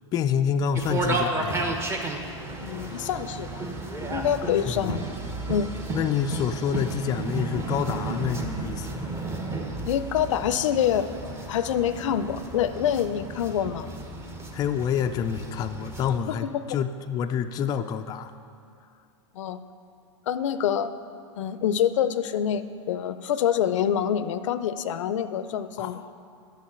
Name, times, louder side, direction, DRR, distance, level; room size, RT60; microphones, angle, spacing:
voice 1, 0.1-1.8 4.7-5.0 5.9-9.1 14.5-18.4 25.8-26.1, left 8 dB, 25° left, 7 dB, 0.4 m, -28 dB
sound 1, 0.7-16.2, right 3 dB, 15° right, 1.0 m, -33 dB
voice 2, 2.6-3.6 4.1-5.0 5.5-5.7 9.9-11.1 11.5-13.9 16.3-16.8 19.3-19.6 20.3-20.9 21.4-26.0, left 9 dB, 75° left, 13 dB, 0.5 m, -26 dB
8.4 x 6.3 x 8.1 m, 2.4 s
hypercardioid pair, 125°, 16 cm